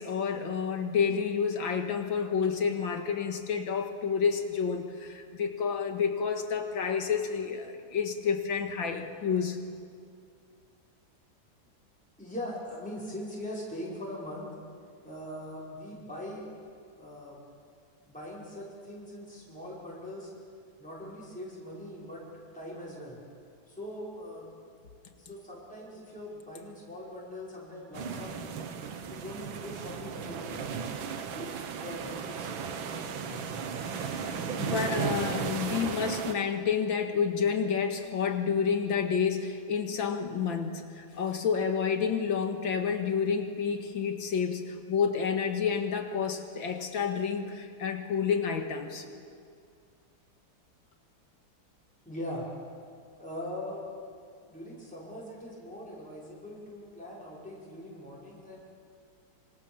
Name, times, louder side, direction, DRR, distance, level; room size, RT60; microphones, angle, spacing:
voice 1, 0.0-9.6 33.8-49.1, left 6 dB, 85° left, 5 dB, 2.6 m, -29 dB
voice 2, 12.2-14.5 15.0-16.5 17.0-17.4 18.1-20.3 20.8-23.2 23.7-24.5 25.1-28.4 29.0-30.9 31.3-33.8 52.1-52.5 53.2-53.8 54.5-58.8, left 1 dB, 5° left, -7 dB, 5.6 m, -41 dB
sound 1, 27.9-36.3, right 6 dB, 85° right, 2.0 m, -35 dB
26.0 x 26.0 x 7.3 m, 2.3 s
omnidirectional pair, 2.1 m